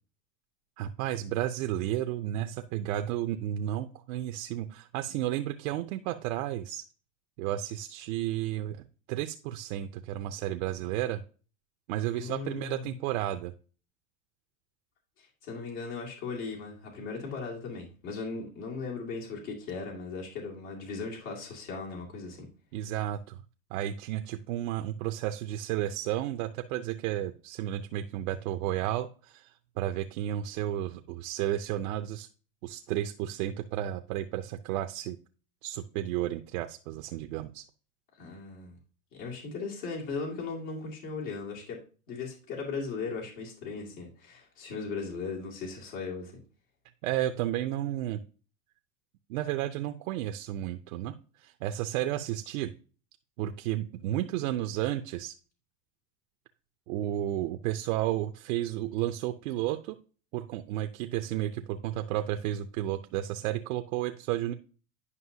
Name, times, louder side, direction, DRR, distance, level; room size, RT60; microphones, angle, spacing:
voice 1, 0.8-6.8 7.4-11.2 11.9-13.5 22.7-23.4 23.7-32.3 32.6-35.2 35.6-37.6 47.0-48.2 49.3-52.7 53.4-55.4 56.9-60.0 60.3-64.5, right 13 dB, 65° right, 8 dB, 0.6 m, -32 dB
voice 2, 12.2-12.9 15.2-22.5 38.2-38.8 39.1-41.8 42.1-46.4, left 4 dB, 75° left, -2 dB, 2.3 m, -38 dB
9.7 x 5.3 x 2.7 m, 0.38 s
hypercardioid pair, 105°, 42 cm